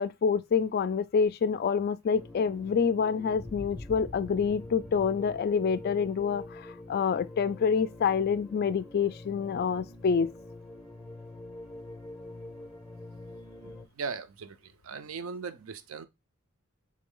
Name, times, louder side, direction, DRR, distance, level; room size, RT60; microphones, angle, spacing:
voice 1, 0.0-10.3, left 6 dB, 45° left, 0.3 m, -27 dB
sound 1, 2.1-13.9, left 2 dB, ahead, 0.6 m, -45 dB
voice 2, 14.0-14.6 14.8-16.0, right 5 dB, 75° right, 0.5 m, -38 dB
3.9 x 3.2 x 3.6 m
head